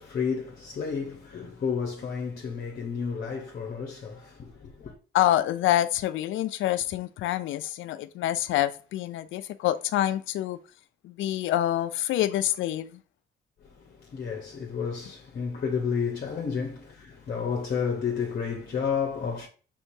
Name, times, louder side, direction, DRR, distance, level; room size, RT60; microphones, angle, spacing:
voice 1, 0.0-5.0 13.6-19.5, left 6 dB, 45° left, 0.8 m, -31 dB
voice 2, 5.1-10.6 11.0-13.0, left 13 dB, 80° left, 0.4 m, -26 dB
4.5 x 3.8 x 2.6 m
cardioid pair, 90°, 20 cm